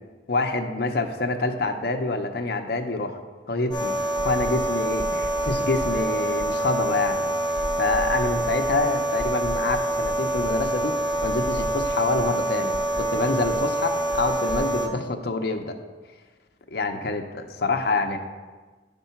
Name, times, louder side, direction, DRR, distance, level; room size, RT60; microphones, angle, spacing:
voice 1, 0.3-3.2 3.5-11.0 11.2-15.8 16.7-18.2, left 3 dB, 60° left, 5 dB, 0.6 m, -26 dB
sound 1, 3.7-14.9, right 1 dB, 25° left, 0.7 m, -26 dB
10.5 x 3.7 x 5.7 m, 1.3 s
head